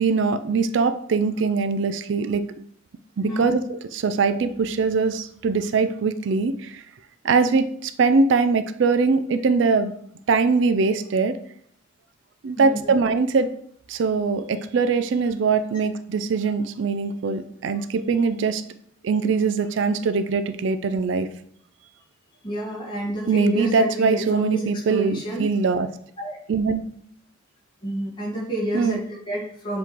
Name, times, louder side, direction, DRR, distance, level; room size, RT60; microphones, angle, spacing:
voice 1, 0.0-2.4 3.2-6.8 7.2-9.9 10.3-11.4 12.4-13.5 13.9-18.6 19.0-21.3 23.3-25.9 26.5-26.8 28.7-29.0, right 4 dB, 70° right, 11 dB, 0.4 m, -22 dB
voice 2, 12.6-12.9 22.4-24.6 24.9-25.5 26.2-26.4 27.8-29.8, right 1 dB, 25° left, -4 dB, 1.9 m, -29 dB
7.0 x 3.1 x 4.4 m, 0.64 s
head